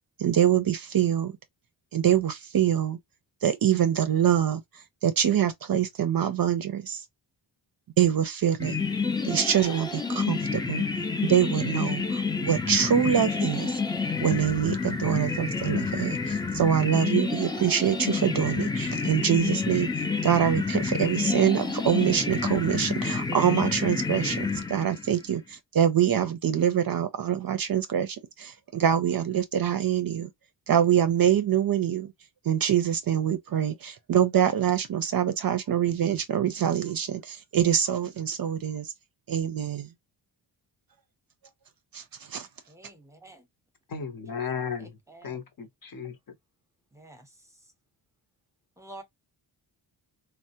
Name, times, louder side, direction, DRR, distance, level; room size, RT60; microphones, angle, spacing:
voice 1, 0.2-1.3 1.9-3.0 3.4-4.6 5.0-7.0 8.0-8.8 9.2-10.8 11.3-13.7 14.2-19.9 20.2-30.3 30.7-32.1 32.5-38.9 39.3-39.9 41.9-42.0 42.3-42.5, right 9 dB, 50° right, 0.5 m, -25 dB
sound 1, 8.6-25.2, left 4 dB, 10° left, 0.4 m, -29 dB
voice 2, 42.7-43.5 44.8-45.4 46.9-47.5 48.8-49.0, right 1 dB, 5° right, 0.7 m, -49 dB
voice 3, 43.9-45.0 45.2-46.2, left 6 dB, 50° left, 0.7 m, -34 dB
3.2 x 2.1 x 2.8 m
wide cardioid pair, 115°, 46 cm